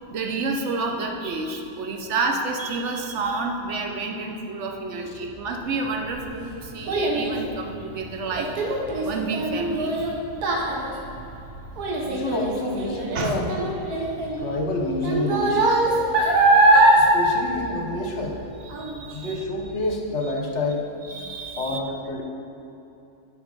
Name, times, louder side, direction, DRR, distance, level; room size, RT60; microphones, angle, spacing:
voice 1, 0.1-8.5 9.0-10.1 13.1-13.4 14.3-14.4 18.8-19.4 21.0-21.8, right 3 dB, 55° right, 3 dB, 0.9 m, -29 dB
Child speech kid speaking, 5.7-18.4 18.7-19.1 19.6-19.7, right 2 dB, 70° right, 1.5 m, -22 dB
voice 2, 12.0-13.5 14.4-15.8 17.0-18.4 19.1-20.9 21.6-22.2, left 2 dB, 50° left, 1 dB, 1.1 m, -28 dB
8.3 x 5.3 x 5.3 m, 2.8 s
omnidirectional pair, 1.7 m